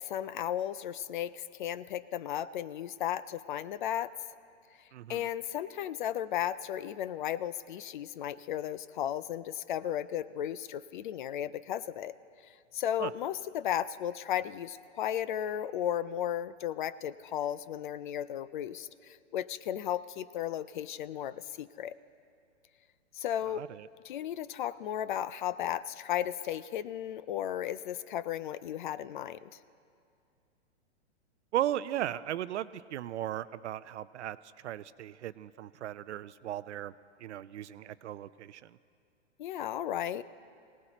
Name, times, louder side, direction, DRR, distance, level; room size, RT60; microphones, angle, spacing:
voice 1, 0.0-4.1 5.1-12.1 12.5-21.9 23.1-23.6 24.0-29.5 39.4-40.2, left 11 dB, 45° left, 17 dB, 0.4 m, -35 dB
voice 2, 4.9-5.3 13.0-13.1 23.5-23.9 31.5-34.4 34.6-36.9 37.2-38.8, right 12 dB, 75° right, 16 dB, 0.6 m, -36 dB
24.5 x 18.0 x 3.0 m, 2.4 s
hypercardioid pair, 140°, 35 cm